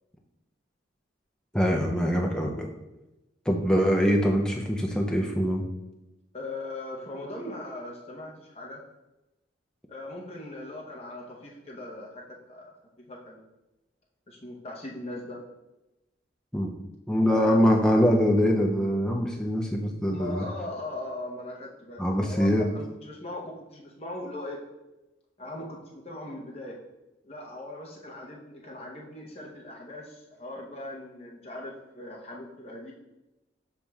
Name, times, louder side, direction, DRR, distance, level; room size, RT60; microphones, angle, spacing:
voice 1, 1.5-2.7 3.5-5.6 16.5-16.7 17.1-20.5 22.0-22.7, equal, 5° left, 0 dB, 0.4 m, -23 dB
voice 2, 6.3-8.8 9.9-13.4 14.3-15.4 17.1-17.7 20.1-24.6 25.4-26.8 27.2-32.9, left 2 dB, 30° left, -3 dB, 0.8 m, -39 dB
6.9 x 3.0 x 2.3 m, 1.0 s
head